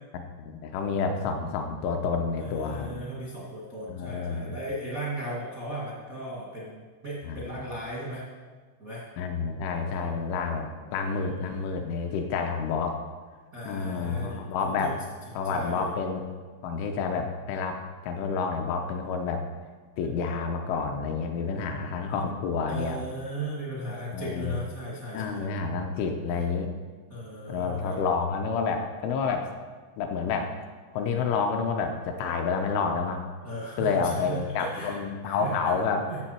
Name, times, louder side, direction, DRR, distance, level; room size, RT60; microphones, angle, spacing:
voice 1, 0.1-2.9 3.9-4.6 7.3-7.5 9.2-13.0 13.6-15.0 15.4-16.4 16.6-19.4 20.0-23.0 24.1-24.6 25.1-26.7 27.5-29.5 30.0-30.5 30.9-33.2 33.8-36.1, left 5 dB, 80° left, 4 dB, 3.0 m, -29 dB
voice 2, 2.4-8.2 8.8-9.0 10.8-11.6 13.5-14.9 15.4-15.9 22.7-25.4 27.1-28.0 33.4-35.0 35.2-35.8 36.1-36.2, right 1 dB, 70° right, -6 dB, 0.8 m, -37 dB
14.0 x 7.6 x 4.5 m, 1.5 s
omnidirectional pair, 5.9 m